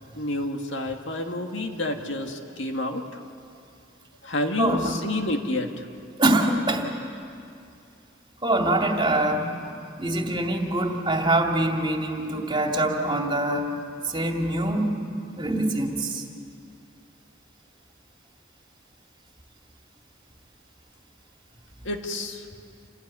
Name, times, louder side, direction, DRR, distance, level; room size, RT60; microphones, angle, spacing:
voice 1, 0.1-3.0 4.2-5.7 21.9-22.4, left 1 dB, 70° left, 3 dB, 2.1 m, -29 dB
voice 2, 4.6-5.0 6.2-6.9 8.4-9.5 10.0-13.7 14.1-14.9 15.3-16.2, right 1 dB, 25° right, 2 dB, 2.4 m, -24 dB
28.5 x 18.5 x 9.7 m, 2.5 s
head